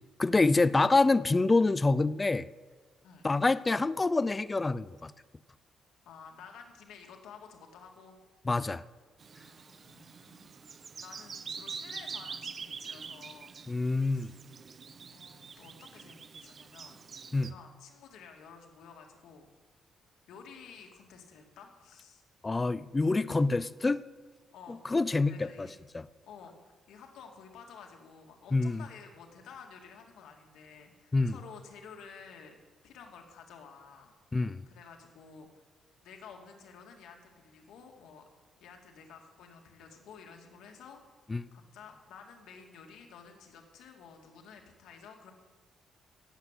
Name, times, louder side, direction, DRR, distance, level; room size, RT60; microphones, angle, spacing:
voice 1, 0.2-2.5 3.2-5.1 8.5-8.8 13.7-14.3 17.3-17.5 22.4-24.0 24.8-25.7 25.9-26.0 28.5-28.8 31.1-31.3 34.3-34.6 41.3-41.5, left 3 dB, 20° left, 17 dB, 0.5 m, -26 dB
voice 2, 6.1-8.2 9.5-10.5 10.8-13.5 13.9-14.4 15.1-17.0 17.4-19.5 20.3-22.2 24.5-24.9 25.3-25.7 26.3-26.5 26.9-32.6 32.8-35.7 36.0-38.3 38.6-41.0 41.5-45.3, left 6 dB, 85° left, 3 dB, 2.3 m, -52 dB
Bird vocalization bird call bird song, 9.2-17.5, right 5 dB, 40° right, 0.8 m, -45 dB
16.5 x 7.9 x 8.3 m, 1.4 s
cardioid pair, 125°, 0 cm